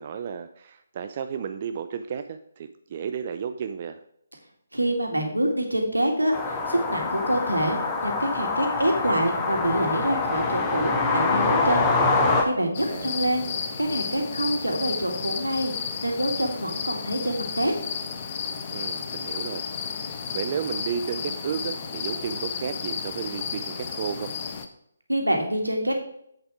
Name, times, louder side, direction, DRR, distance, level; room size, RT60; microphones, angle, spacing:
voice 1, 0.0-4.0 12.9-13.3 18.7-24.3, right 7 dB, 40° right, 8 dB, 0.4 m, -33 dB
voice 2, 4.7-6.3 6.7-13.5 13.8-15.7 16.0-17.7 25.1-26.0, right 1 dB, 85° right, 2 dB, 2.3 m, -26 dB
sound 1, 6.3-12.4, left 3 dB, 15° left, 1.3 m, -25 dB
sound 2, 12.7-24.6, left 6 dB, 35° left, 0.9 m, -33 dB
8.0 x 6.9 x 4.8 m, 0.70 s
figure-of-eight pair, 145°, 0 cm